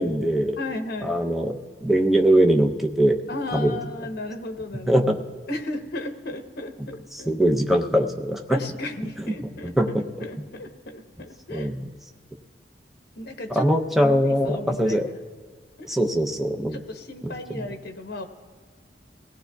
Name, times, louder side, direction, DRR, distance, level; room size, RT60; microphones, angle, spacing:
voice 1, 0.0-0.6 1.0-3.2 3.5-3.8 4.9-5.2 7.1-8.6 9.4-10.3 11.5-11.9 13.5-15.1 15.8-16.8 17.2-17.7, right 1 dB, ahead, 2 dB, 0.6 m, -22 dB
voice 2, 0.6-1.2 3.3-5.1 5.5-7.3 8.5-9.7 10.2-11.7 13.1-13.7 14.0-15.1 15.8-15.9 16.7-18.2, left 2 dB, 60° left, 5 dB, 1.0 m, -35 dB
22.5 x 17.0 x 2.3 m, 1.5 s
head